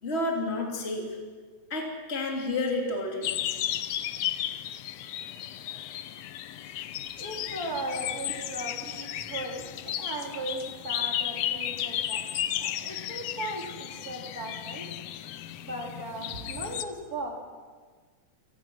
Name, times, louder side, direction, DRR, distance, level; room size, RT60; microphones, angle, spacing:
voice 1, 0.0-1.1 1.7-3.3, left 2 dB, 20° left, 0 dB, 3.1 m, -30 dB
sound 1, 3.2-16.9, left 12 dB, 70° left, 1.7 m, -34 dB
voice 2, 7.2-12.3 12.6-14.9 15.6-17.4, right 2 dB, 30° right, 0 dB, 4.0 m, -37 dB
28.0 x 19.0 x 6.3 m, 1.5 s
omnidirectional pair, 3.5 m